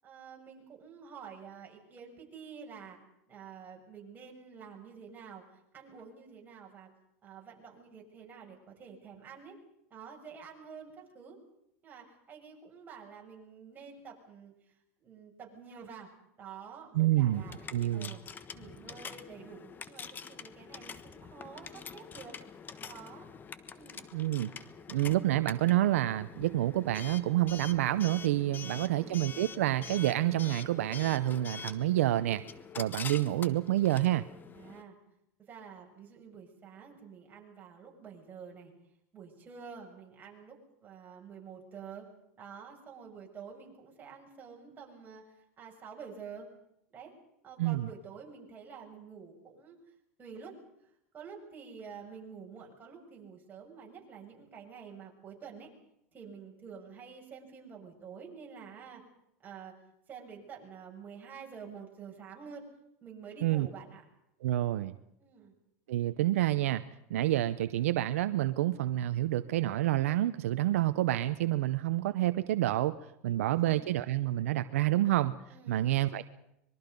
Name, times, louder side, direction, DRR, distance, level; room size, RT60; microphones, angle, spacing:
voice 1, 0.0-3.0 3.3-5.5 5.7-6.9 7.2-9.6 9.9-11.4 11.8-14.5 15.0-16.1 16.4-17.5 17.9-18.2 18.5-22.4 22.9-23.3 23.7-24.1 28.6-29.2 34.5-35.0 35.5-38.7 39.1-42.0 42.4-46.5 46.9-47.1 47.4-49.8 50.2-50.6 51.1-55.7 56.1-59.0 59.4-59.8 60.1-62.6 63.0-64.0 65.2-65.5 73.3-73.9 75.5-75.9, right 6 dB, 25° right, -1 dB, 6.9 m, -49 dB
voice 2, 16.9-17.4 17.7-18.1 24.1-24.5 24.9-32.4 32.8-34.3 47.6-47.9 63.4-63.7 64.4-65.0 65.9-66.8 67.1-72.9 73.2-75.3 75.7-76.2, right 14 dB, 85° right, 12 dB, 0.8 m, -28 dB
Coin (dropping) / Alarm, 17.3-34.8, left 6 dB, 25° left, 1.3 m, -46 dB
25.0 x 22.5 x 5.4 m, 0.80 s
supercardioid pair, 115°, 7 cm